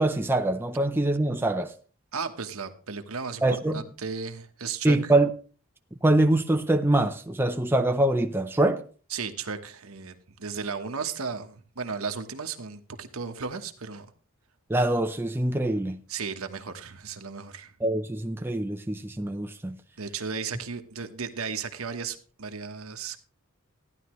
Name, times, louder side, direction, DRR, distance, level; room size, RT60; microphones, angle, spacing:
voice 1, 0.0-1.7 3.4-3.8 4.8-5.3 6.0-8.8 14.7-16.0 17.8-19.8, right 1 dB, 10° right, 0.5 m, -24 dB
voice 2, 2.1-3.4 3.7-5.1 9.1-14.1 16.1-17.7 20.0-23.2, right 5 dB, 75° right, 1.2 m, -35 dB
15.0 x 11.0 x 3.1 m
head